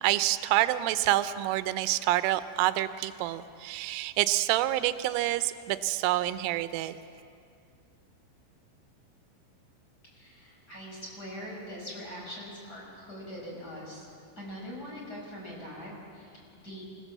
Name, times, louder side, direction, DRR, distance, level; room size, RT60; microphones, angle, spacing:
voice 1, 0.0-6.9, right 15 dB, 90° right, 13 dB, 3.2 m, -27 dB
voice 2, 10.1-14.1 14.4-16.8, equal, 20° left, -3 dB, 5.8 m, -42 dB
25.5 x 17.5 x 7.4 m, 2.4 s
omnidirectional pair, 5.6 m